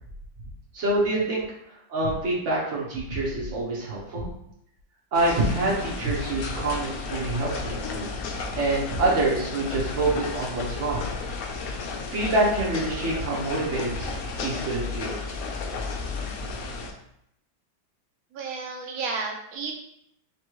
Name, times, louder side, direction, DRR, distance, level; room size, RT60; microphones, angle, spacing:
voice 1, 0.7-1.4 1.9-4.3 5.1-8.1 8.5-11.0 12.1-14.1 14.4-15.1, right 2 dB, 45° right, -4 dB, 1.3 m, -26 dB
sound 1, 5.1-16.9, left 4 dB, 85° left, 0.7 m, -33 dB
voice 2, 18.3-19.8, right 4 dB, 80° right, 1 dB, 0.7 m, -32 dB
4.3 x 3.2 x 3.0 m, 0.77 s
omnidirectional pair, 2.1 m